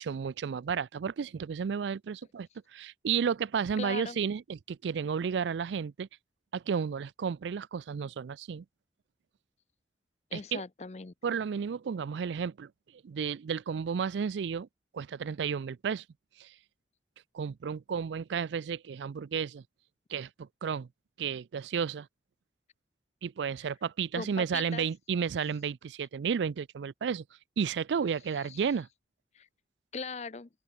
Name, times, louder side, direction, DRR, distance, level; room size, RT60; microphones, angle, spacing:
voice 1, 0.0-6.1 6.5-8.6 10.3-10.6 11.2-14.7 14.9-16.0 16.4-16.5 17.3-19.6 20.1-20.9 21.2-22.1 23.2-27.2 27.6-28.9, right 6 dB, 90° right, 0.4 m, -32 dB
voice 2, 3.8-4.2 10.3-11.1 24.1-24.9 28.5-28.6 29.3-29.5 29.9-30.5, left 4 dB, 40° left, 0.6 m, -39 dB
open air
head